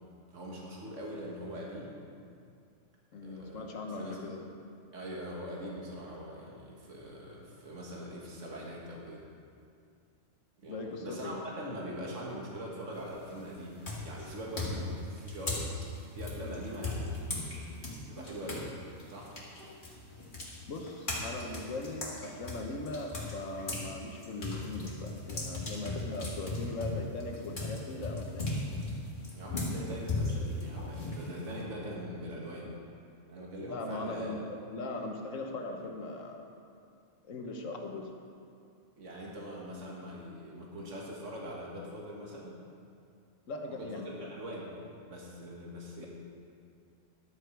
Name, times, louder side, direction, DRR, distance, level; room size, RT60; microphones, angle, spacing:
voice 1, 0.3-2.0 3.2-4.3 4.9-9.2 10.6-15.7 16.1-17.5 18.1-18.7 19.1-19.3 29.3-32.7 33.3-34.3 39.0-42.6 43.7-43.9 44.3-44.7 45.1-46.1, equal, 70° right, -3 dB, 2.0 m, -42 dB
voice 2, 3.1-4.5 10.7-11.4 20.7-28.6 33.7-36.5 37.2-38.1 43.5-44.3, left 2 dB, 90° left, 3 dB, 1.5 m, -39 dB
sound 1, 12.9-13.3 13.8-18.7 19.0-23.9 24.2-31.6, left 2 dB, 40° left, 2.0 m, -37 dB
11.5 x 8.4 x 4.6 m, 2.4 s
omnidirectional pair, 1.3 m